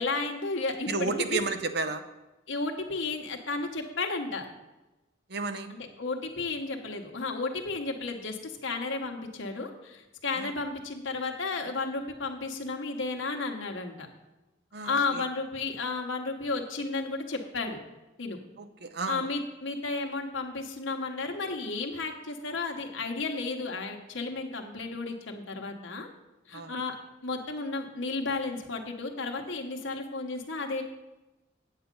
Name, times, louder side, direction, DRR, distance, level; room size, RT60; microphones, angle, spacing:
voice 1, 0.0-1.4 2.5-4.5 5.7-14.1 14.8-17.8 18.2-18.4 19.1-26.1 26.5-26.9 27.2-30.8, left 3 dB, 70° left, 2 dB, 1.1 m, -33 dB
voice 2, 0.9-2.0 5.3-5.7 10.4-10.5 14.7-15.2 18.8-19.2 26.5-26.8, right 3 dB, 55° right, 9 dB, 0.7 m, -32 dB
8.7 x 7.4 x 5.3 m, 1.0 s
head